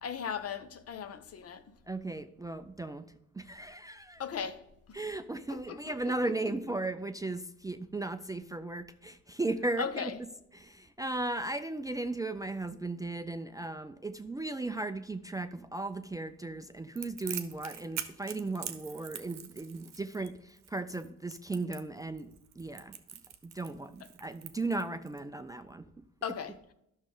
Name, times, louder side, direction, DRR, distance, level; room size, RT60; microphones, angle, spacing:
voice 1, 0.0-1.6 4.2-4.6 5.5-6.4 9.6-10.2 20.2-20.3 24.0-24.1 26.2-26.7, left 7 dB, 50° left, 0.8 m, -38 dB
voice 2, 1.9-3.1 3.3-4.2 4.9-10.3 10.5-23.0 23.4-26.0, right 2 dB, 10° right, 0.4 m, -36 dB
Crackle, 17.0-25.2, right 9 dB, 60° right, 0.8 m, -44 dB
11.0 x 6.2 x 3.8 m
cardioid pair, 90°, 30 cm